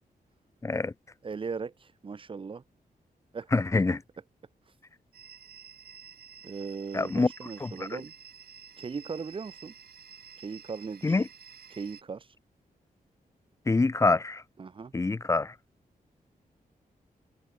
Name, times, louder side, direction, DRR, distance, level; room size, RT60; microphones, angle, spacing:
voice 1, 0.6-0.9 3.5-4.0 6.9-7.3 7.6-7.9 11.0-11.2 13.7-14.4 14.9-15.5, left 3 dB, 20° left, 0.4 m, -25 dB
voice 2, 1.2-2.6 3.3-3.5 4.7-4.8 6.4-8.1 8.8-9.7 10.4-11.2 11.7-12.4 14.6-14.9, right 5 dB, 35° right, 0.6 m, -38 dB
sound 1, 5.1-12.0, right 7 dB, 85° right, 5.5 m, -51 dB
wide cardioid pair, 125°, 16 cm